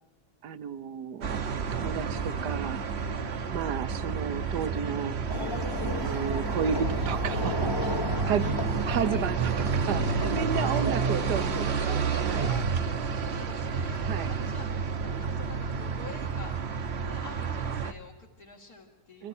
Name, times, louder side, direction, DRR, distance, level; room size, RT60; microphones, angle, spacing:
voice 1, 0.4-5.2 6.0-7.8 8.3-8.4 8.9-12.5 14.1-14.3 19.2-19.3, right 8 dB, 80° right, 13 dB, 1.5 m, -33 dB
sound 1, 1.2-17.9, right 5 dB, 45° right, 1.1 m, -30 dB
voice 2, 2.9-3.4 7.8-8.6 10.2-10.9 12.5-16.6 17.0-19.3, left 3 dB, 65° left, -3 dB, 2.6 m, -47 dB
sound 2, 5.3-12.6, left 2 dB, 20° left, 0.8 m, -35 dB
28.5 x 24.0 x 4.3 m, 1.1 s
omnidirectional pair, 1.7 m